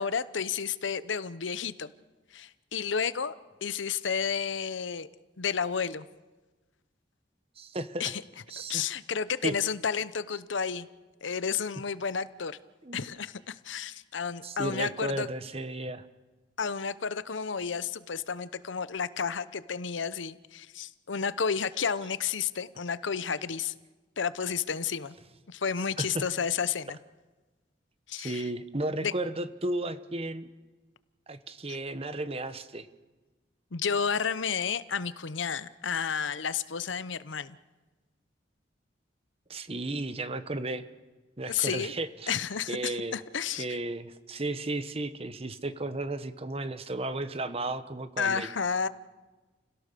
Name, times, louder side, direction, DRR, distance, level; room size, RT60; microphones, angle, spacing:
voice 1, 0.0-1.9 2.3-3.3 3.6-5.1 5.4-6.0 8.0-8.2 8.7-10.9 11.2-12.6 12.9-15.3 16.6-23.7 24.2-25.1 25.5-27.0 28.1-28.5 29.0-29.1 31.7-31.8 33.7-37.6 41.5-41.9 42.3-43.7 48.2-48.9, left 6 dB, 85° left, 15 dB, 0.8 m, -31 dB
voice 2, 7.6-8.0 8.5-8.8 9.4-9.5 12.8-13.1 14.4-16.0 26.0-26.2 28.2-30.5 31.3-32.9 39.5-40.8 41.4-42.3 42.7-43.2 43.6-48.5, right 2 dB, 30° right, 12 dB, 1.0 m, -34 dB
29.5 x 17.0 x 6.8 m, 1.2 s
head